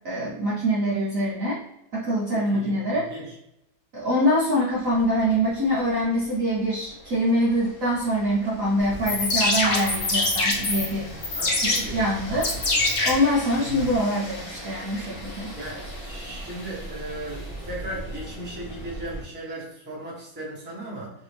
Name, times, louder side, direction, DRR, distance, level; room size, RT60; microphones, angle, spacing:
voice 1, 0.0-1.6 1.9-3.1 3.9-11.1 11.6-12.5 13.0-15.5, equal, 60° right, -7 dB, 0.9 m, -24 dB
voice 2, 2.3-3.3 11.3-12.1 13.6-14.0 15.6-21.1, right 1 dB, 10° right, -6 dB, 0.7 m, -37 dB
sound 1, 4.7-19.2, right 1 dB, 40° left, 1.0 m, -41 dB
sound 2, 8.9-13.9, left 2 dB, 60° left, 1.2 m, -25 dB
3.3 x 2.6 x 3.2 m, 0.83 s
omnidirectional pair, 2.1 m